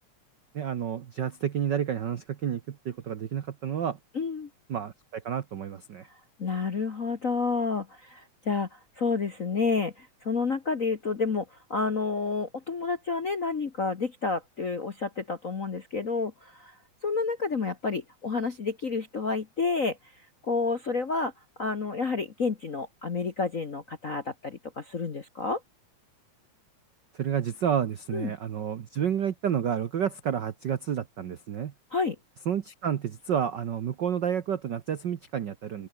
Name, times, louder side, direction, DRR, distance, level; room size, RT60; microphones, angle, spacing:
voice 1, 0.5-4.0 4.7-6.1 27.1-31.7 32.5-35.9, right 8 dB, 80° right, 0.9 m, -30 dB
voice 2, 4.1-4.5 6.1-21.3 21.6-25.6 28.1-28.3 31.9-32.2, left 4 dB, 50° left, 0.9 m, -30 dB
open air
omnidirectional pair, 3.5 m